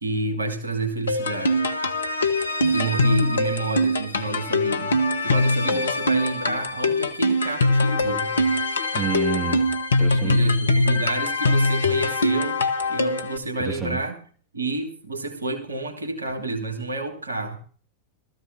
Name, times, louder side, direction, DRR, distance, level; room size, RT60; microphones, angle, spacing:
voice 1, 0.0-1.7 2.7-8.3 10.1-14.2 14.5-17.6, right 2 dB, 75° right, 1.6 m, -30 dB
sound 1, 1.1-13.4, left 2 dB, 70° left, 1.1 m, -22 dB
voice 2, 8.9-9.7 10.0-10.4 13.6-14.0, right 7 dB, 30° right, 2.0 m, -28 dB
19.5 x 14.0 x 2.7 m
figure-of-eight pair, 90°, 0 cm